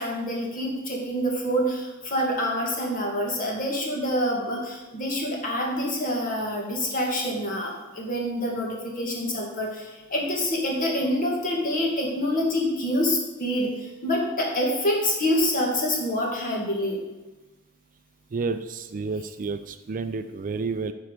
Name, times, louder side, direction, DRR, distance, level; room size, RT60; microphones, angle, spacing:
voice 1, 0.0-17.0, equal, 40° left, -1 dB, 2.1 m, -26 dB
voice 2, 18.3-20.9, right 4 dB, 40° right, 9 dB, 0.4 m, -30 dB
9.0 x 4.6 x 6.6 m, 1.1 s
head